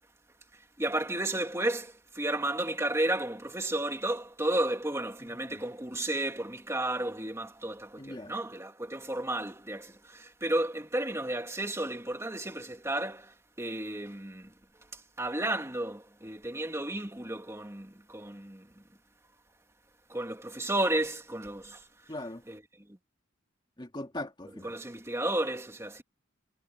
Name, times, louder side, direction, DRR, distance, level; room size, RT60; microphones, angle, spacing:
voice 1, 0.8-14.5 14.9-18.8 20.1-21.8 22.5-22.6 22.9-23.0 24.6-26.0, right 1 dB, 15° right, 2.3 m, -33 dB
voice 2, 5.2-5.6 8.0-8.4 22.1-22.4 23.8-24.7, left 1 dB, 20° left, 2.5 m, -40 dB
head